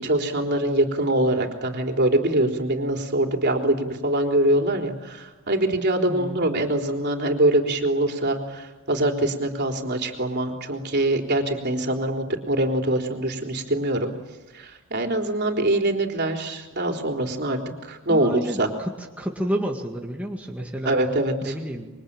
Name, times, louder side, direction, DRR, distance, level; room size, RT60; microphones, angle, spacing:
voice 1, 0.0-14.1 14.5-18.7 20.9-21.5, right 1 dB, 50° right, 3 dB, 3.8 m, -24 dB
voice 2, 6.1-6.5 18.1-21.0 21.4-21.9, right 1 dB, 5° right, 0 dB, 2.1 m, -30 dB
27.0 x 24.0 x 8.9 m, 1.1 s
head